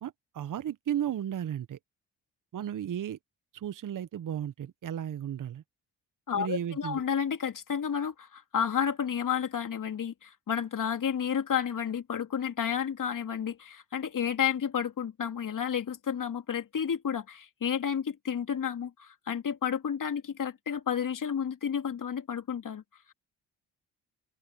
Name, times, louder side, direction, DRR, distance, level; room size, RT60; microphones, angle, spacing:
voice 1, 0.0-1.8 2.5-3.2 3.5-5.6 6.4-7.0, right 10 dB, 50° right, 1.0 m, -34 dB
voice 2, 6.3-22.8, left 8 dB, 50° left, 2.8 m, -31 dB
open air
hypercardioid pair, 50°, 40 cm